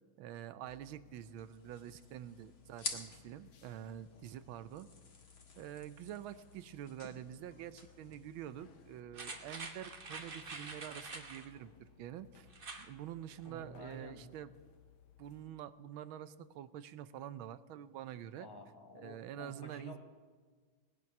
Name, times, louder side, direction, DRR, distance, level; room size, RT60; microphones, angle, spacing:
voice 1, 0.2-4.9 5.6-12.5 12.8-14.5 15.2-18.5 18.9-20.0, right 11 dB, 85° right, 14 dB, 1.5 m, -47 dB
sound 1, 0.7-15.5, left 8 dB, 80° left, 1.8 m, -63 dB
sound 2, 1.4-9.0, left 4 dB, 50° left, 2.0 m, -50 dB
sound 3, 9.1-11.5 12.5-12.9 13.3-13.4, right 3 dB, 35° right, 1.1 m, -46 dB
voice 2, 13.4-14.3 18.4-20.0, right 1 dB, 15° left, 4 dB, 1.2 m, -50 dB
18.5 x 10.5 x 5.9 m, 1.5 s
omnidirectional pair, 2.2 m